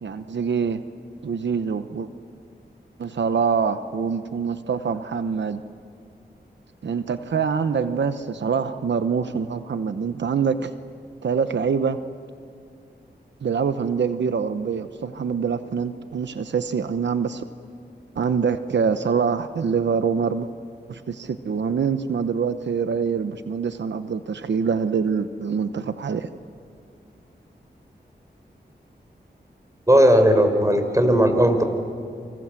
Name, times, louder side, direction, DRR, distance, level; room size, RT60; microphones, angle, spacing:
voice 1, 0.0-0.8 1.2-2.1 3.0-5.6 6.8-10.7 11.2-12.0 13.4-17.4 18.2-20.5 20.9-26.3, right 6 dB, 85° right, 10 dB, 0.9 m, -25 dB
voice 2, 29.9-31.6, equal, 20° right, 7 dB, 4.5 m, -16 dB
28.0 x 26.0 x 7.6 m, 2.3 s
wide cardioid pair, 65°, 18 cm